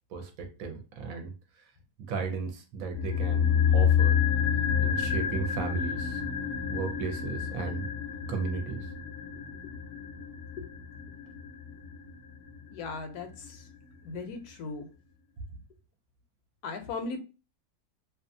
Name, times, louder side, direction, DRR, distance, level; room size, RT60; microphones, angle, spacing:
voice 1, 0.1-1.3 2.1-3.5 3.7-4.2 4.8-6.2 6.7-7.9 8.3-8.8, right 4 dB, 70° right, 5 dB, 1.0 m, -35 dB
sound 1, 2.9-13.2 13.4-13.5, left 7 dB, 65° left, 0.8 m, -29 dB
voice 2, 12.7-13.6 14.0-14.9 16.6-17.2, left 4 dB, 80° left, 7 dB, 1.1 m, -37 dB
2.6 x 2.3 x 2.5 m, 0.32 s
omnidirectional pair, 1.6 m